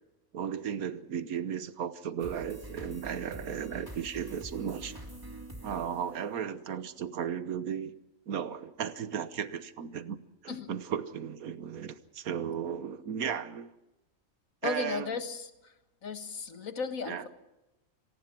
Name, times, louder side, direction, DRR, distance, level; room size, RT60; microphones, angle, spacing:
voice 1, 0.3-4.9 5.6-7.9 8.3-10.2 10.4-13.7 14.6-15.1 17.1-17.2, right 8 dB, 85° right, 13 dB, 1.5 m, -35 dB
sound 1, 2.2-6.9, right 1 dB, 15° right, 2.7 m, -45 dB
voice 2, 14.6-15.7 16.0-17.3, left 5 dB, 70° left, 8 dB, 2.0 m, -35 dB
26.0 x 19.0 x 6.0 m, 0.97 s
omnidirectional pair, 1.5 m